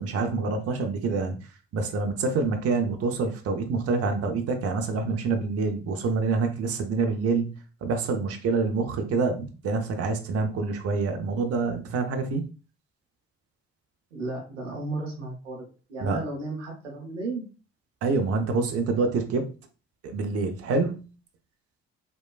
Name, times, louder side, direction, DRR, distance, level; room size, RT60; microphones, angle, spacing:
voice 1, 0.0-1.4 1.7-7.5 7.8-12.4 16.0-16.2 18.0-19.5 20.0-21.1, right 4 dB, 40° right, 5 dB, 0.6 m, -26 dB
voice 2, 14.1-17.4, right 2 dB, 85° right, 1 dB, 0.6 m, -34 dB
3.0 x 2.1 x 2.3 m, 0.34 s
figure-of-eight pair, 45°, 36 cm